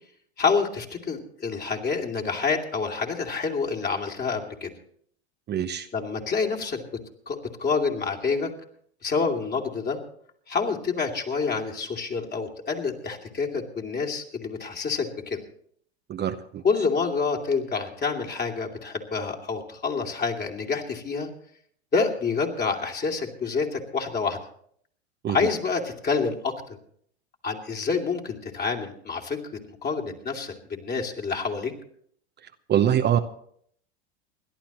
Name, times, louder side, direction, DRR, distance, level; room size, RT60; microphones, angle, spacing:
voice 1, 0.4-4.7 5.9-6.8 7.3-8.5 9.0-10.0 10.5-15.4 16.6-21.3 21.9-24.4 25.3-26.8 27.4-29.4 29.8-31.7, left 5 dB, 30° left, 2 dB, 2.7 m, -27 dB
voice 2, 5.5-5.9 16.1-16.6 25.2-25.4 32.7-33.2, right 10 dB, 30° right, 7 dB, 0.9 m, -23 dB
29.0 x 11.5 x 3.0 m, 0.64 s
hypercardioid pair, 90°, 34 cm